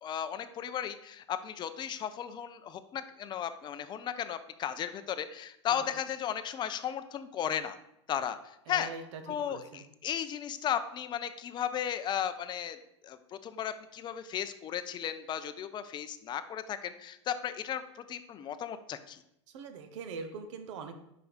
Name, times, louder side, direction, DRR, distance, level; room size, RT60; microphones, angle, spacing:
voice 1, 0.0-7.8 8.1-8.9 9.3-12.8 13.0-19.2, left 9 dB, 30° left, 10 dB, 0.5 m, -35 dB
voice 2, 8.7-9.8 19.5-21.0, right 5 dB, 70° right, 7 dB, 0.9 m, -43 dB
5.0 x 4.7 x 4.9 m, 0.79 s
hypercardioid pair, 110°, 16 cm